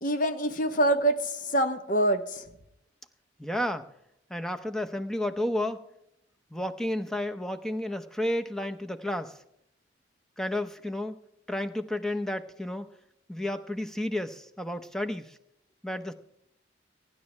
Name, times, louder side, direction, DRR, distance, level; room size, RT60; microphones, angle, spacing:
voice 1, 0.0-2.4, right 1 dB, 45° left, 9 dB, 0.9 m, -25 dB
voice 2, 3.4-3.9 4.3-5.8 6.5-9.4 10.4-11.2 11.5-12.9 13.3-15.4 15.8-16.1, left 1 dB, 5° left, 7 dB, 0.7 m, -31 dB
23.5 x 10.5 x 3.3 m, 0.77 s
head